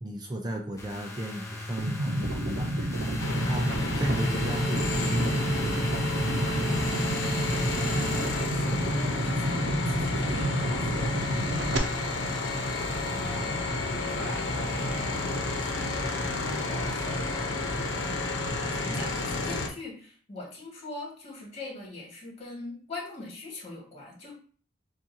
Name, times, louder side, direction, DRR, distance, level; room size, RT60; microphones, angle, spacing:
voice 1, 0.0-2.9 3.3-6.3 13.1-13.7, right 1 dB, 25° right, 2 dB, 0.5 m, -35 dB
sound 1, 0.8-9.1, equal, 15° left, 0.8 m, -35 dB
sound 2, 1.8-11.8, right 1 dB, 70° right, 0.7 m, -30 dB
sound 3, 3.2-19.7, left 2 dB, 85° left, 0.9 m, -31 dB
voice 2, 7.8-12.3 13.0-13.6 14.1-16.3 16.8-17.6 17.9-24.3, left 2 dB, 35° left, -3 dB, 2.0 m, -42 dB
7.2 x 2.5 x 2.8 m, 0.43 s
head